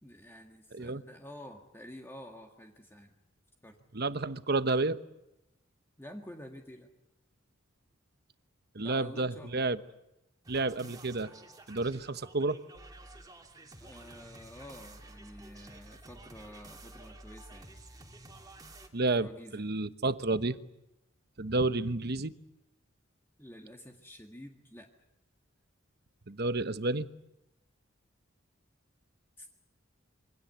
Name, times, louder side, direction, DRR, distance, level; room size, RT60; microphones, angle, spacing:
voice 1, 0.0-3.1 3.6-3.8 6.0-6.9 8.8-9.7 13.8-17.7 19.2-19.7 23.4-24.9 29.4-29.5, left 1 dB, 10° left, 2 dB, 1.9 m, -49 dB
voice 2, 0.7-1.0 3.9-5.0 8.7-9.8 10.5-11.3 11.7-12.6 18.9-19.3 19.5-20.6 21.4-22.3 26.3-27.1, right 3 dB, 50° right, 12 dB, 1.1 m, -30 dB
sound 1, 10.4-18.9, right 2 dB, 20° right, 2.9 m, -51 dB
27.5 x 24.0 x 8.0 m, 0.92 s
head